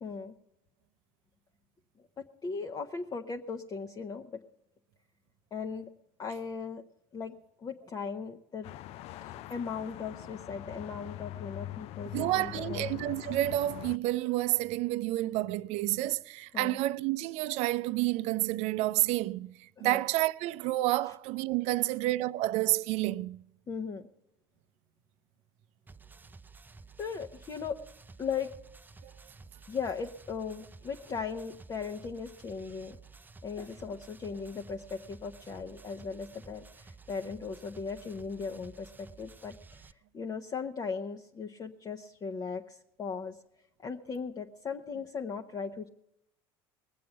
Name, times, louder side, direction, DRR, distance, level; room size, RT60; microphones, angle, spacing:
voice 1, 0.0-0.3 2.2-4.4 5.5-5.9 6.2-6.8 7.1-8.7 9.2-12.9 16.5-16.8 19.8-20.0 23.7-24.1 27.0-27.8 28.2-28.5 29.7-32.9 33.4-39.8 40.1-43.4 43.8-45.9, left 5 dB, 30° left, 1.0 m, -38 dB
sound 1, 8.6-14.0, left 15 dB, 55° left, 0.4 m, -42 dB
voice 2, 12.1-23.4 29.0-29.1, right 17 dB, 60° right, 0.5 m, -29 dB
sound 2, 25.9-39.9, right 4 dB, 15° right, 0.5 m, -53 dB
20.0 x 7.6 x 7.1 m
hypercardioid pair, 80°, 12 cm